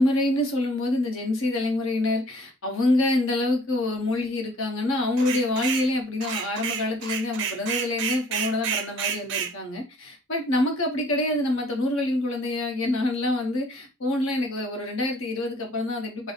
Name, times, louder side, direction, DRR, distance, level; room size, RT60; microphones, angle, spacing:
voice 1, 0.0-16.3, left 2 dB, 60° left, 1.0 m, -26 dB
sound 1, 5.2-5.9 6.2-9.5, right 8 dB, 55° right, 0.4 m, -30 dB
3.4 x 2.0 x 4.0 m
head